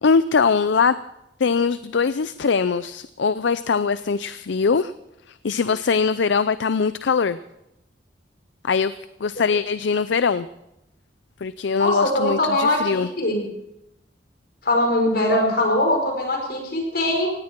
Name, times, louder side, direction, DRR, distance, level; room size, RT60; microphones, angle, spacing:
voice 1, 0.0-1.0 1.4-4.9 5.3-7.4 8.6-8.9 9.2-10.5 11.4-13.1, left 5 dB, 70° left, 15 dB, 0.5 m, -21 dB
voice 2, 11.8-13.4 14.6-17.3, left 1 dB, 55° left, 2 dB, 5.0 m, -21 dB
18.0 x 17.5 x 4.5 m, 0.84 s
head